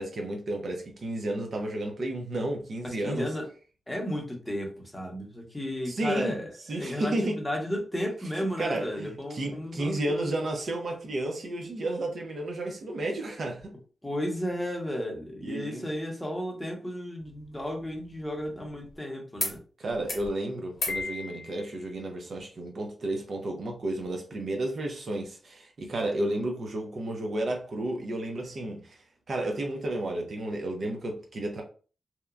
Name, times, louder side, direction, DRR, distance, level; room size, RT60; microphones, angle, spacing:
voice 1, 0.0-3.3 5.9-6.4 6.7-7.4 8.4-13.7 15.4-15.9 19.8-31.6, right 1 dB, 60° right, 0.6 m, -32 dB
voice 2, 3.0-3.4 3.9-10.4 14.0-19.6, equal, 10° left, 0.8 m, -33 dB
sound 1, 17.2-19.0 19.4-19.6 19.9-20.3 20.7-21.0 22.4-22.5, left 2 dB, 50° left, 1.0 m, -37 dB
Piano, 20.9-21.9, left 4 dB, 80° left, 0.6 m, -37 dB
2.8 x 2.1 x 2.4 m
cardioid pair, 80°, 0 cm